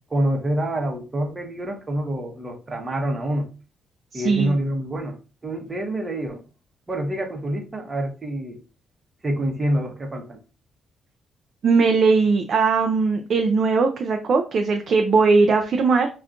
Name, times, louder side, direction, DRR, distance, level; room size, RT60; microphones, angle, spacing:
voice 1, 0.1-3.5 4.1-6.4 6.9-8.6 9.2-10.4, right 1 dB, 25° right, 3 dB, 0.8 m, -27 dB
voice 2, 4.1-4.6 11.6-16.1, right 4 dB, 55° right, 4 dB, 0.4 m, -19 dB
3.5 x 2.4 x 2.4 m, 0.34 s
cardioid pair, 90°, 0 cm